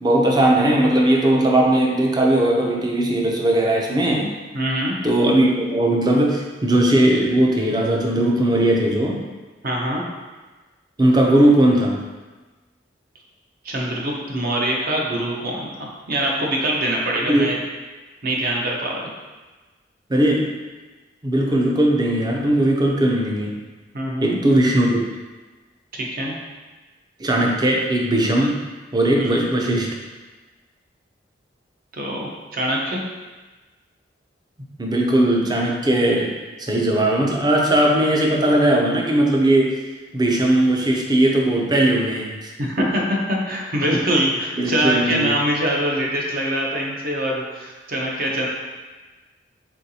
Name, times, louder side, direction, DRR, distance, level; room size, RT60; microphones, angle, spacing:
voice 1, 0.0-4.3 5.0-9.3 11.0-12.0 17.3-17.5 20.1-20.4 21.2-23.6 24.2-25.1 27.2-28.6 28.9-29.9 34.8-39.8 40.1-42.5 44.6-45.3, right 1 dB, 25° right, -1 dB, 0.5 m, -18 dB
voice 2, 4.5-5.0 9.6-10.0 13.6-15.7 16.1-17.6 18.2-19.0 23.9-24.4 25.9-26.3 29.2-29.4 31.9-33.0 42.6-48.5, right 1 dB, 55° right, -2 dB, 0.8 m, -23 dB
4.4 x 3.6 x 2.8 m, 1.3 s
head